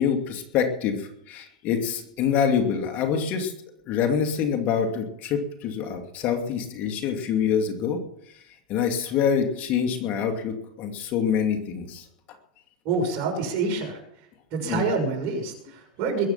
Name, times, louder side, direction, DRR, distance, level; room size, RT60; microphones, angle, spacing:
voice 1, 0.0-3.5 3.9-8.0 8.7-12.0 14.6-14.8, left 7 dB, 45° left, 5 dB, 2.7 m, -25 dB
voice 2, 12.8-14.0 14.5-16.3, right 4 dB, 50° right, 3 dB, 6.7 m, -27 dB
21.5 x 8.9 x 5.9 m, 0.75 s
supercardioid pair, 130°, 4 cm